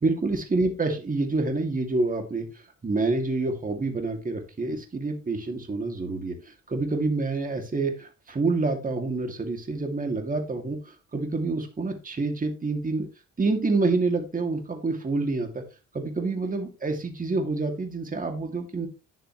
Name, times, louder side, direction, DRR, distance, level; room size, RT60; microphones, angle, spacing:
voice 1, 0.0-2.5 2.8-6.3 6.7-10.8 11.1-13.1 13.4-15.6 15.9-18.9, right 3 dB, 25° right, 4 dB, 2.3 m, -27 dB
10.0 x 7.9 x 3.1 m, 0.29 s
cardioid pair, 90°, 30 cm